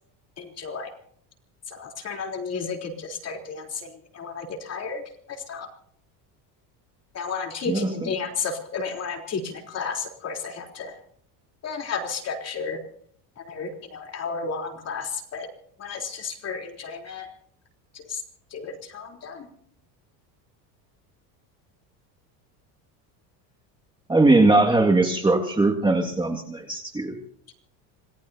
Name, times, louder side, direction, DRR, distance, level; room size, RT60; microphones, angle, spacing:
voice 1, 0.4-0.9 1.7-5.0 5.3-5.7 7.1-11.0 11.6-12.8 13.4-15.5 15.8-17.3 17.9-18.2 18.5-19.5 27.5-27.6, left 5 dB, 35° left, 3 dB, 3.7 m, -33 dB
voice 2, 7.7-8.1 24.1-27.2, right 2 dB, 10° right, 1 dB, 2.1 m, -20 dB
27.0 x 18.5 x 2.8 m, 0.63 s
cardioid pair, 130°, 44 cm